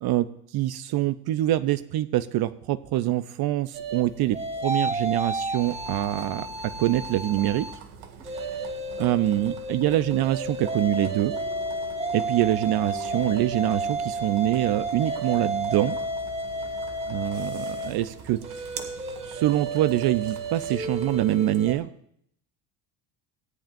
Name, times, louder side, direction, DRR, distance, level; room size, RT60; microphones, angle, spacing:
voice 1, 0.5-7.7 9.0-11.3 12.1-16.0 17.1-18.4 19.2-21.9, right 14 dB, 55° right, 14 dB, 0.7 m, -25 dB
sound 1, 3.7-7.8 8.2-21.8, right 2 dB, 15° right, 1.5 m, -32 dB
sound 2, 5.6-21.7, right 6 dB, 75° right, 2.0 m, -45 dB
sound 3, 11.0-17.3, left 12 dB, 70° left, 2.1 m, -50 dB
18.0 x 10.5 x 2.6 m, 0.71 s
supercardioid pair, 85°, 46 cm